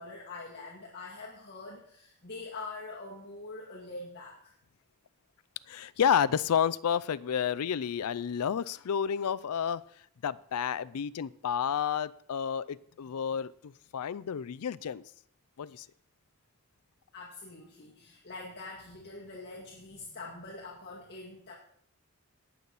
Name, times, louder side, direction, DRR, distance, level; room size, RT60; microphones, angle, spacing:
voice 1, 0.0-4.5 17.1-21.5, left 3 dB, 45° left, 2.1 m, -44 dB
voice 2, 5.7-9.8 10.2-15.0 15.6-15.9, left 8 dB, 85° left, 0.4 m, -30 dB
18.5 x 7.0 x 4.1 m
head